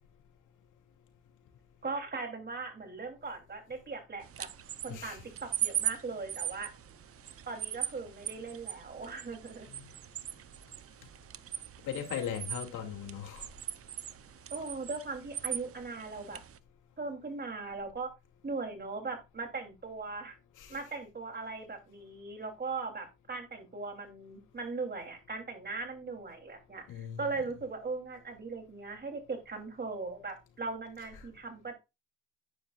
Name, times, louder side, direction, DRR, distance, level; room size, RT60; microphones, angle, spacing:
voice 1, 1.8-4.5 4.8-6.7 7.5-9.7 14.5-16.4 17.0-18.1 18.4-20.4 20.7-31.7, right 3 dB, 35° right, 3.2 m, -39 dB
sound 1, 4.2-16.6, right 10 dB, 50° right, 0.7 m, -40 dB
voice 2, 11.8-13.5 20.6-20.8 26.9-27.3, left 8 dB, 85° left, 2.6 m, -38 dB
10.0 x 9.6 x 2.4 m
cardioid pair, 90°, 30 cm